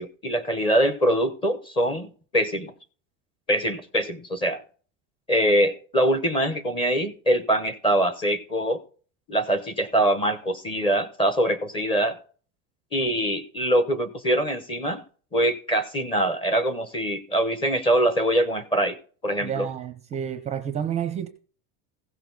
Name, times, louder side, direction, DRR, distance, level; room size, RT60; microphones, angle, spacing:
voice 1, 0.0-2.7 3.5-4.6 5.3-8.8 9.3-12.2 12.9-15.0 15.3-19.0 19.2-19.7, right 1 dB, 15° left, 0.9 m, -23 dB
voice 2, 19.4-21.3, right 9 dB, 20° right, 0.6 m, -30 dB
16.0 x 6.8 x 4.0 m
cardioid pair, 175°, 38 cm